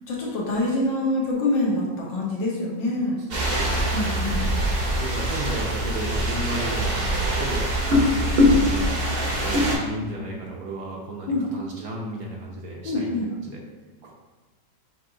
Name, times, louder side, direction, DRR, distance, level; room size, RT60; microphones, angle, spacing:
voice 1, 0.1-3.2 3.9-4.5 11.3-11.5 12.8-13.3, left 2 dB, 85° left, -3 dB, 1.7 m, -25 dB
voice 2, 3.2-4.3 4.8-7.7 8.1-8.9 9.2-13.1 13.4-13.6 14.0-14.1, right 2 dB, 65° right, -2 dB, 1.0 m, -34 dB
sound 1, 3.3-9.8, equal, 45° right, 0.8 m, -23 dB
5.9 x 2.8 x 2.7 m, 1.2 s
omnidirectional pair, 1.9 m